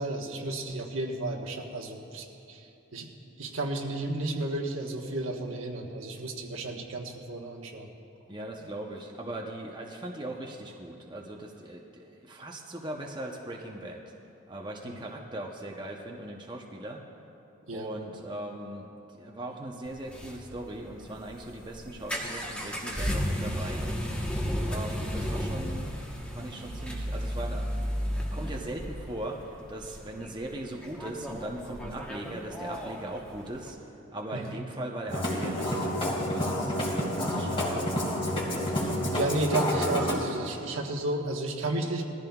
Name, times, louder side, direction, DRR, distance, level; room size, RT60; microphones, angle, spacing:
voice 1, 0.0-2.7 2.9-3.1 3.4-7.9 14.8-15.0 17.7-17.9 34.3-34.6 38.7-42.0, right 2 dB, 75° right, 1 dB, 1.3 m, -32 dB
voice 2, 8.3-14.0 14.5-17.0 17.7-23.9 24.6-26.0 26.3-36.8 37.2-38.0, right 1 dB, 20° right, 0 dB, 0.7 m, -39 dB
sound 1, 19.9-33.7, equal, 5° left, 1.1 m, -34 dB
Musical instrument, 35.1-40.1, equal, 25° left, 2.1 m, -29 dB
20.5 x 14.0 x 2.3 m, 3.0 s
head